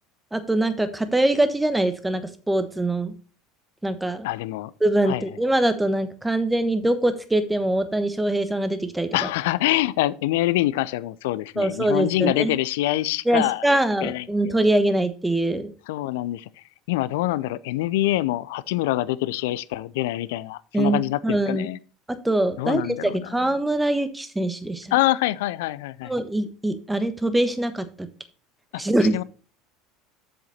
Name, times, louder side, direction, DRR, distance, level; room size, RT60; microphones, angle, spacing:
voice 1, 0.3-3.1 3.8-4.3 4.8-9.3 11.6-12.5 13.2-15.7 20.7-21.7 22.1-24.9 26.0-28.1 28.8-29.2, right 1 dB, 10° right, 1.2 m, -23 dB
voice 2, 4.2-4.7 5.1-5.2 9.1-13.7 14.0-14.6 15.9-16.5 16.9-21.8 22.6-23.4 24.9-26.1 29.1-29.2, left 16 dB, 70° left, 0.4 m, -25 dB
7.7 x 6.7 x 4.1 m
hypercardioid pair, 70°, 0 cm